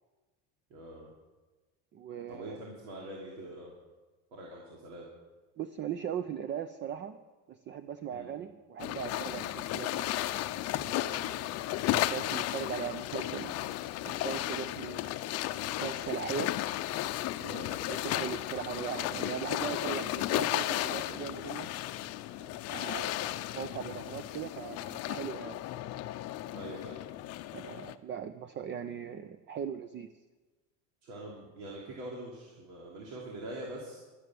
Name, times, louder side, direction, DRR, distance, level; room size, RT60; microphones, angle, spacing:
voice 1, 0.7-1.1 2.3-3.7 4.3-5.1 8.1-8.3 17.4-17.7 26.5-27.0 31.0-34.0, right 1 dB, 75° right, -3 dB, 3.1 m, -43 dB
voice 2, 1.9-2.6 5.6-7.2 7.5-10.1 10.8-11.4 11.9-13.7 14.0-15.1 15.8-16.5 18.0-21.7 22.4-25.6 27.5-30.1, right 8 dB, 30° right, 11 dB, 0.5 m, -39 dB
sound 1, 8.8-27.9, left 14 dB, 45° left, 0.6 m, -34 dB
12.0 x 9.8 x 7.6 m, 1.2 s
cardioid pair, 140°, 36 cm